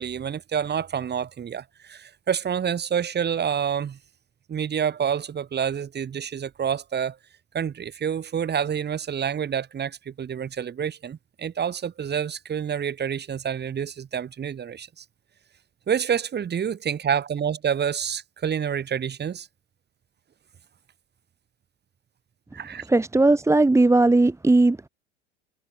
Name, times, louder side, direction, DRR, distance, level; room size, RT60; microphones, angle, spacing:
voice 1, 0.0-4.0 4.5-7.2 7.5-15.0 15.9-19.5 22.5-22.8, right 8 dB, 30° right, 7.0 m, -28 dB
voice 2, 22.9-24.9, right 2 dB, 10° right, 1.9 m, -18 dB
figure-of-eight pair, 75°, 34 cm